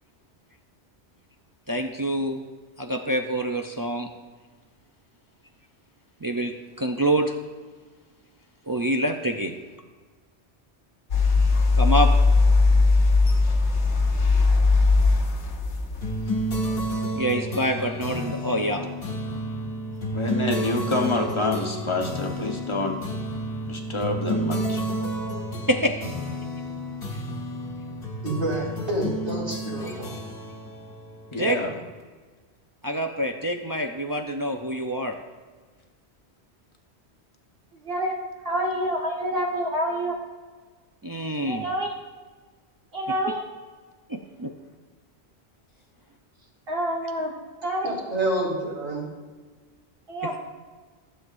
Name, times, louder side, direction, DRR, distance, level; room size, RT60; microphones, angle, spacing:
voice 1, 1.7-2.4 2.8-4.1 6.2-7.3 8.7-9.6 11.8-12.1 17.2-18.9 25.7-25.9 31.4-31.6 32.8-35.2 41.0-41.7 44.1-44.5, right 1 dB, 35° right, 4 dB, 0.3 m, -26 dB
sound 1, 11.1-16.9, left 3 dB, 80° left, 1.3 m, -20 dB
sound 2, 16.0-31.9, right 1 dB, 60° left, 1.4 m, -31 dB
voice 2, 20.1-23.0 23.7-24.8 31.3-31.7, left 2 dB, 25° left, 2 dB, 1.1 m, -27 dB
voice 3, 28.2-30.2 47.8-49.1, right 1 dB, 80° right, -5 dB, 3.8 m, -28 dB
voice 4, 37.7-38.2 38.4-40.2 41.5-41.9 42.9-43.4 46.7-47.3 47.6-47.9 50.1-50.4, equal, 55° right, -1 dB, 1.9 m, -27 dB
15.0 x 7.7 x 2.6 m, 1.4 s
omnidirectional pair, 1.1 m